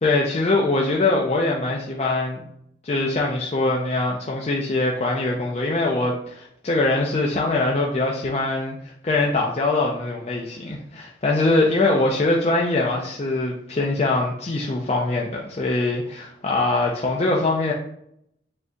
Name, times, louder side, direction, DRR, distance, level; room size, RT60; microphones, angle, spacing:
voice 1, 0.0-2.4 2.8-17.7, left 2 dB, 35° left, -2 dB, 0.5 m, -22 dB
7.4 x 2.8 x 2.3 m, 0.73 s
head